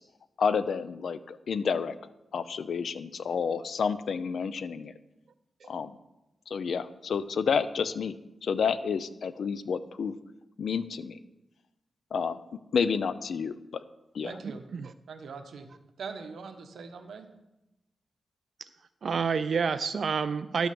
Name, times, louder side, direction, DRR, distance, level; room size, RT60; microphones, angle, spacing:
voice 1, 0.4-1.9 2.3-4.9 5.7-6.0 6.5-8.2 8.4-10.2 10.6-11.2 12.1-12.4 12.7-13.8 14.1-14.3, left 6 dB, 75° left, 13 dB, 0.5 m, -30 dB
voice 2, 14.2-14.6 15.1-15.7 16.0-17.3, right 5 dB, 80° right, 6 dB, 1.1 m, -42 dB
voice 3, 19.0-20.7, right 5 dB, 60° right, 12 dB, 0.3 m, -28 dB
12.0 x 6.1 x 6.9 m, 0.93 s
wide cardioid pair, 100°, 0 cm